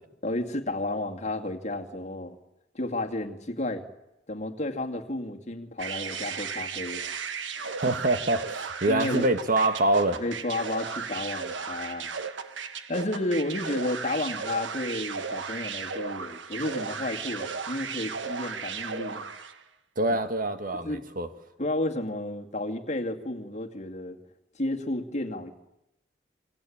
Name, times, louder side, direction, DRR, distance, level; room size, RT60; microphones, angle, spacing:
voice 1, 0.2-2.4 2.7-3.8 4.3-7.0 7.5-7.8 8.9-9.3 10.2-12.2 12.9-19.3 20.8-21.1 21.6-24.2 24.5-25.5, left 1 dB, 40° left, 2.3 m, -32 dB
sound 1, 5.8-19.6, right 5 dB, 85° right, 1.5 m, -35 dB
voice 2, 7.8-10.2 19.9-21.3, right 2 dB, 50° right, 1.6 m, -25 dB
28.0 x 22.0 x 8.7 m
head